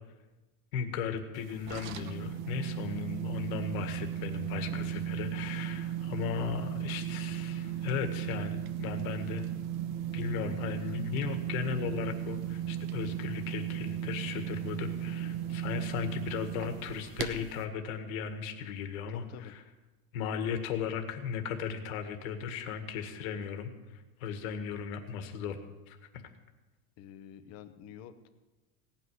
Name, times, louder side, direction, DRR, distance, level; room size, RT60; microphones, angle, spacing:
voice 1, 0.7-9.5 10.1-19.6 20.1-25.6 25.9-26.2, left 7 dB, 80° left, 7 dB, 1.9 m, -36 dB
sound 1, 1.4-17.6, right 11 dB, 75° right, 1.3 m, -36 dB
voice 2, 19.1-19.5 27.0-28.3, left 9 dB, 40° left, 9 dB, 1.0 m, -49 dB
17.5 x 6.1 x 9.5 m, 1.2 s
cardioid pair, 175°, 41 cm